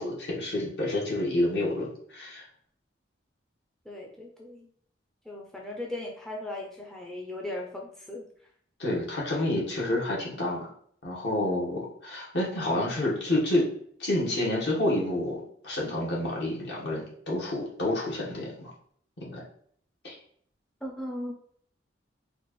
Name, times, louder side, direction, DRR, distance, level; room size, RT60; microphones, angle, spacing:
voice 1, 0.0-2.4 8.8-10.7 11.0-13.7 14.0-18.7 19.2-19.4 20.0-20.2, left 1 dB, 65° left, -3 dB, 1.2 m, -29 dB
voice 2, 3.9-4.7 5.3-8.3 20.8-21.3, left 1 dB, 5° left, -1 dB, 0.4 m, -37 dB
4.3 x 2.4 x 3.0 m, 0.62 s
head